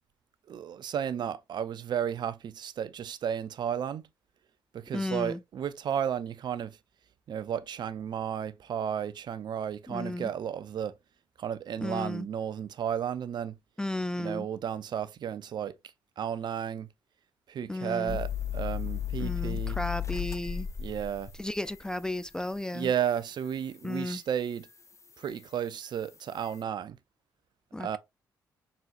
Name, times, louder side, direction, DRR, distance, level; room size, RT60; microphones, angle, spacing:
voice 1, 0.5-4.0 4.7-6.8 7.3-10.9 11.4-13.6 14.2-15.7 16.2-16.9 17.5-19.8 20.8-21.3 22.7-24.7 25.2-27.0 27.8-28.0, right 8 dB, 55° right, 0.5 m, -33 dB
voice 2, 4.9-5.4 9.9-10.3 11.8-12.3 13.8-14.5 17.7-18.2 19.2-20.7 21.4-22.9 23.8-24.2 27.7-28.0, left 1 dB, 10° left, 0.3 m, -34 dB
sound 1, 18.1-22.3 22.8-22.9 25.3-25.4, left 10 dB, 35° left, 0.7 m, -34 dB
4.2 x 3.9 x 2.4 m
hypercardioid pair, 50°, 9 cm